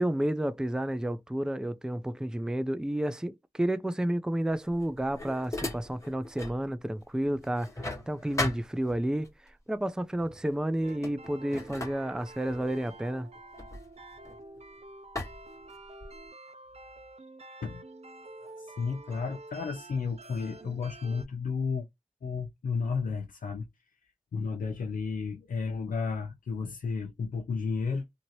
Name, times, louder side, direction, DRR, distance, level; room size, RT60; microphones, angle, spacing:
voice 1, 0.0-9.3 9.7-13.3, right 1 dB, 5° right, 0.4 m, -31 dB
sound 1, 4.6-6.6 7.0-9.3 10.2-10.4 10.8-14.6 15.1-16.3, left 2 dB, 20° left, 1.4 m, -38 dB
sound 2, 10.8-21.2, right 2 dB, 50° right, 0.6 m, -48 dB
voice 2, 18.4-21.9 22.2-23.7 24.3-28.0, left 5 dB, 85° left, 0.6 m, -32 dB
2.8 x 2.7 x 2.9 m
cardioid pair, 55°, 14 cm